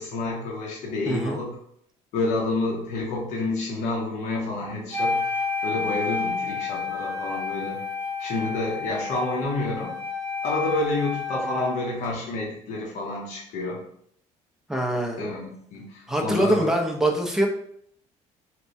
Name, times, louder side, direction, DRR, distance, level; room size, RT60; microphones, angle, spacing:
voice 1, 0.0-1.6 2.1-5.3 5.6-7.8 8.2-9.9 10.4-13.8 15.2-16.7, left 2 dB, 65° left, -3 dB, 0.8 m, -29 dB
voice 2, 1.0-1.4 14.7-15.2 16.1-17.5, right 1 dB, 5° right, 1 dB, 0.5 m, -24 dB
Wind instrument woodwind instrument, 4.9-11.9, left 4 dB, 15° left, 1.2 m, -30 dB
4.3 x 2.1 x 2.6 m, 0.68 s
cardioid pair, 145°, 13 cm